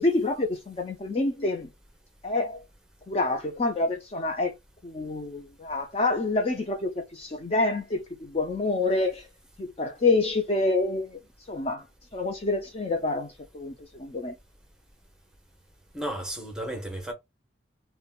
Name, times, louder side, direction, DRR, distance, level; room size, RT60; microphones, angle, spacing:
voice 1, 0.0-1.7 2.2-2.6 3.1-4.5 4.8-9.3 9.6-11.2 11.5-11.8 12.1-14.3, left 2 dB, 30° left, 0.4 m, -27 dB
voice 2, 15.9-17.1, right 1 dB, 5° right, 0.8 m, -33 dB
3.7 x 2.1 x 2.3 m
head